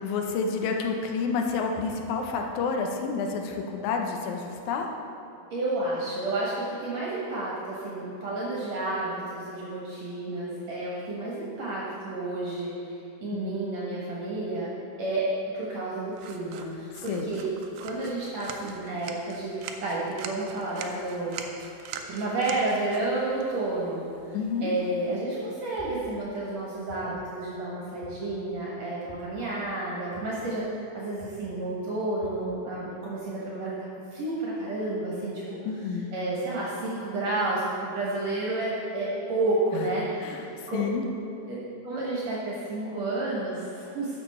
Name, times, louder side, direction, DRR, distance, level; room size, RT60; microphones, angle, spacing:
voice 1, 0.0-4.9 13.3-13.6 17.1-17.3 24.3-24.8 35.7-36.1 39.7-39.9 40.2-40.5 40.7-41.0, left 5 dB, 75° left, 3 dB, 2.2 m, -29 dB
voice 2, 5.5-14.7 15.0-15.3 15.5-17.5 17.8-21.4 22.1-24.1 24.6-33.7 34.1-35.6 36.1-40.8 41.8-44.2, right 2 dB, 60° right, -6 dB, 2.5 m, -31 dB
sound 1, 16.1-25.2, right 6 dB, 85° right, 2.2 m, -43 dB
sound 2, 25.8-26.2 26.9-27.4 28.0-28.5 29.1-29.4 30.1-30.5 31.2-31.5 32.2-32.6, left 1 dB, 10° right, 1.9 m, -49 dB
12.5 x 7.0 x 4.3 m, 2.8 s
omnidirectional pair, 3.5 m